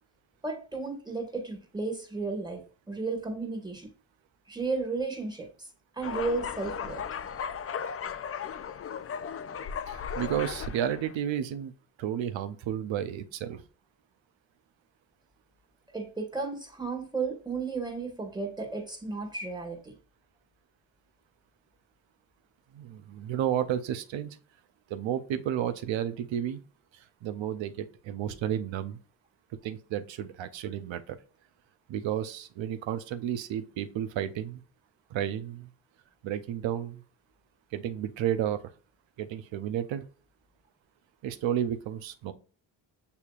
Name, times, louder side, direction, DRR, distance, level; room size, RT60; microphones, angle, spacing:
voice 1, 0.4-2.6 2.9-3.9 4.5-5.5 5.9-7.0 15.9-19.9, right 3 dB, 10° right, 3 dB, 1.6 m, -33 dB
sound 1, 6.0-11.2, left 7 dB, 35° left, 0.4 m, -36 dB
voice 2, 9.9-11.7 12.0-13.6 22.7-24.4 24.9-26.6 27.2-29.0 29.6-31.2 31.9-34.6 35.1-35.7 36.2-37.0 37.7-38.6 39.2-40.0 41.2-42.3, right 10 dB, 80° right, 12 dB, 0.7 m, -32 dB
6.8 x 2.8 x 2.4 m, 0.39 s
supercardioid pair, 55°, 45 cm